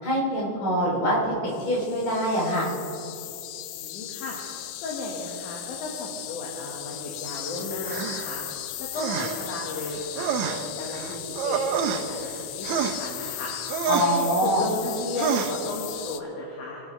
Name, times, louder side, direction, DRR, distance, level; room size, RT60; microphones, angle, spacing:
voice 1, 0.0-2.7 13.9-14.6, equal, 55° left, -5 dB, 4.8 m, -24 dB
sound 1, 1.5-16.2, left 13 dB, 90° left, 2.2 m, -37 dB
voice 2, 3.7-4.4 4.8-8.4 8.8-13.5 14.0-16.8, left 2 dB, 70° left, -3 dB, 3.1 m, -34 dB
sound 2, 7.8-8.3 9.0-9.5 9.8-12.4 12.6-13.4 13.7-14.2 15.2-15.6, right 8 dB, 75° right, 1.8 m, -28 dB
24.0 x 12.0 x 3.3 m, 2.9 s
omnidirectional pair, 3.7 m